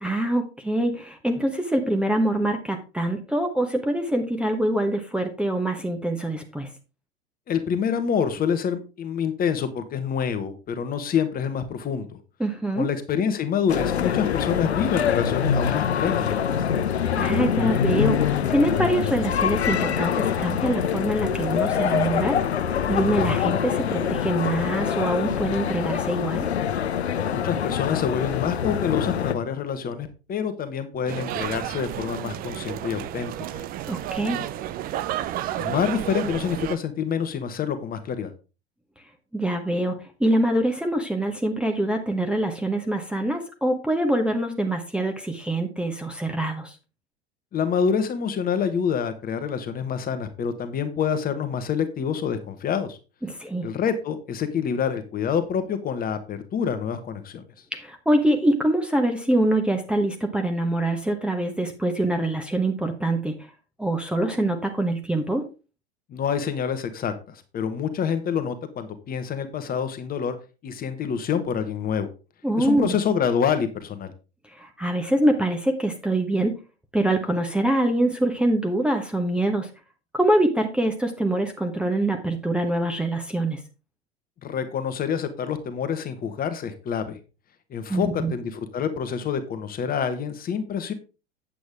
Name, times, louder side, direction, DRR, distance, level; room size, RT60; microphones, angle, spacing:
voice 1, 0.0-6.7 12.4-12.9 17.2-22.4 22.9-26.4 33.9-34.4 39.3-46.7 53.2-53.7 57.7-63.5 63.8-65.4 72.4-73.0 74.6-76.5 76.9-79.7 80.1-83.6 87.9-88.3, right 1 dB, 5° right, 2 dB, 1.0 m, -24 dB
voice 2, 7.5-12.2 12.8-16.6 27.3-33.7 35.6-38.3 47.5-53.0 53.6-57.4 66.1-70.3 70.6-72.1 72.6-74.1 84.4-87.2 87.7-90.9, left 7 dB, 25° left, 9 dB, 1.2 m, -27 dB
sound 1, 13.7-29.3, left 8 dB, 75° left, 0.8 m, -24 dB
sound 2, 31.1-36.8, right 12 dB, 25° right, 0.5 m, -31 dB
8.6 x 7.7 x 3.5 m, 0.31 s
figure-of-eight pair, 85°, 33 cm